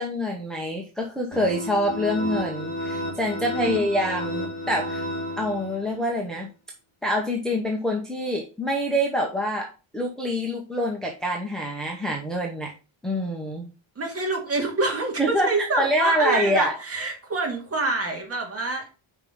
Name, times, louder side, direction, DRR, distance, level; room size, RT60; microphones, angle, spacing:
voice 1, 0.0-5.0 5.4-6.5 7.0-12.7 13.0-13.6 15.2-16.7, equal, ahead, -2 dB, 0.8 m, -26 dB
sound 1, 1.3-6.0, left 1 dB, 25° left, 3.5 m, -32 dB
voice 2, 3.6-3.9 14.0-18.8, right 3 dB, 30° right, 1 dB, 2.2 m, -27 dB
5.4 x 4.9 x 5.4 m, 0.32 s
cardioid pair, 170°, 48 cm